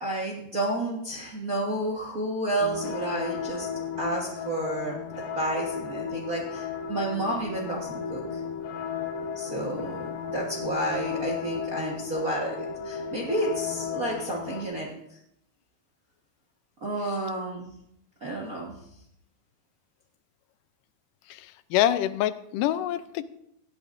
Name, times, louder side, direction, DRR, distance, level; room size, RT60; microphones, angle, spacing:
voice 1, 0.0-3.7 4.0-8.2 9.3-14.9 16.8-17.7 18.2-18.7, right 1 dB, 45° right, -2 dB, 1.1 m, -31 dB
sound 1, 2.6-14.6, left 7 dB, 65° left, 2.3 m, -34 dB
voice 2, 21.3-23.2, left 12 dB, 90° left, 13 dB, 2.2 m, -26 dB
17.5 x 12.5 x 2.6 m, 0.75 s
omnidirectional pair, 3.7 m